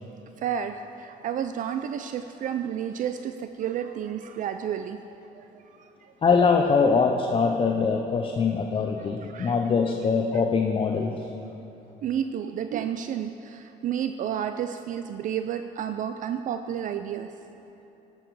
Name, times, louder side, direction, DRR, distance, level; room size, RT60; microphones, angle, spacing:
voice 1, 0.4-5.0 5.3-6.1 9.0-9.6 12.0-17.3, right 9 dB, 50° right, 8 dB, 0.4 m, -31 dB
voice 2, 6.2-11.1, left 5 dB, 30° left, 3 dB, 0.6 m, -23 dB
13.5 x 7.0 x 4.7 m, 3.0 s
cardioid pair, 110°, 17 cm